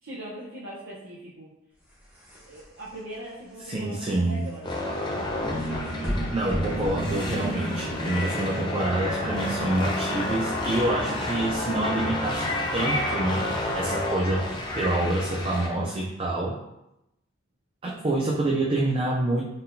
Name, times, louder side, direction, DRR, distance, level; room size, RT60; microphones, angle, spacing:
voice 1, 0.0-1.5 2.4-4.7 5.7-6.3 17.9-18.2, right 1 dB, 85° right, -8 dB, 0.9 m, -41 dB
sound 1, 1.8-7.7, equal, 10° right, 1.1 m, -37 dB
voice 2, 3.6-4.4 6.3-14.5 14.7-16.6 17.8-19.4, right 2 dB, 30° right, -2 dB, 0.4 m, -27 dB
sound 2, 4.6-15.7, left 1 dB, 25° left, 0.6 m, -30 dB
4.2 x 3.7 x 2.6 m, 0.89 s
head